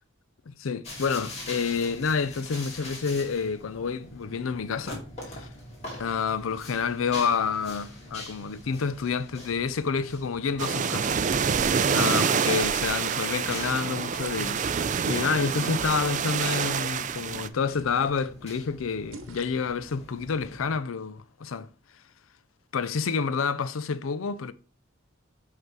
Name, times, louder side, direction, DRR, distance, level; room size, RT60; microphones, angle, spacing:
voice 1, 0.5-5.5 6.0-14.6 15.1-21.7 22.7-24.5, left 5 dB, 80° left, 0.5 m, -29 dB
sound 1, 0.8-20.8, left 1 dB, 30° left, 2.4 m, -44 dB
sound 2, 10.6-17.5, right 6 dB, 35° right, 0.4 m, -27 dB
sound 3, 11.1-11.8 12.6-13.2 14.1-14.7 15.6-16.1 16.3-16.9 17.7-18.3 19.1-19.6, right 3 dB, 80° right, 1.0 m, -44 dB
7.9 x 3.8 x 4.6 m
head